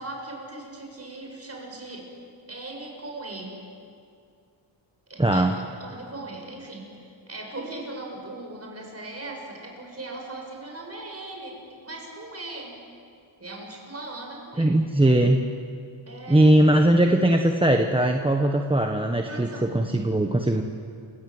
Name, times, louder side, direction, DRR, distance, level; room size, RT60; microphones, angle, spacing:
voice 1, 0.0-2.1 2.5-3.6 5.1-5.5 5.8-12.8 13.4-14.7 16.1-16.6 19.3-19.7, right 2 dB, 30° right, 0 dB, 6.8 m, -39 dB
voice 2, 5.2-5.5 14.6-15.4 16.3-20.6, right 1 dB, 10° right, 3 dB, 1.3 m, -20 dB
29.0 x 17.0 x 8.0 m, 2.4 s
cardioid pair, 90°, 45 cm